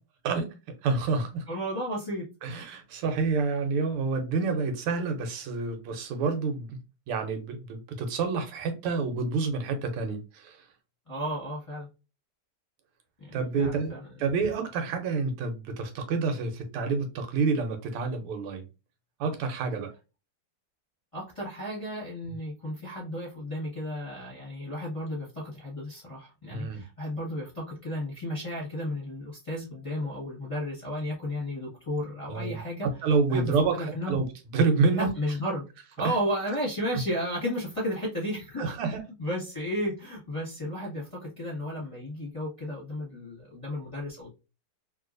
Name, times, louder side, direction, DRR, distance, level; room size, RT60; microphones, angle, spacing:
voice 1, 0.8-1.5 2.4-6.8 7.1-10.6 13.3-18.6 19.2-19.9 26.5-26.8 32.3-34.3 34.5-35.1 36.0-36.1 36.9-37.0 38.6-39.0, right 4 dB, 85° right, 1.6 m, -28 dB
voice 2, 1.5-2.3 11.1-11.9 13.2-14.1 21.1-32.9 33.3-34.1 34.9-35.6 36.0-38.8 39.2-44.3, equal, 20° left, 1.1 m, -33 dB
3.2 x 2.9 x 2.4 m
omnidirectional pair, 2.4 m